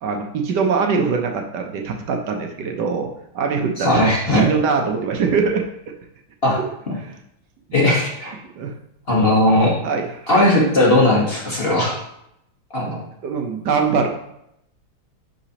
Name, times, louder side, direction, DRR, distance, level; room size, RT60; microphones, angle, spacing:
voice 1, 0.0-5.7 7.0-7.1 7.7-7.8 8.6-8.7 9.8-10.4 13.2-14.1, right 5 dB, 65° right, 3 dB, 1.1 m, -22 dB
voice 2, 3.8-4.5 6.4-6.6 7.7-8.3 9.1-9.7 10.3-11.9 12.7-13.0, left 1 dB, 30° left, -5 dB, 1.4 m, -17 dB
10.0 x 4.0 x 2.8 m, 0.80 s
omnidirectional pair, 2.4 m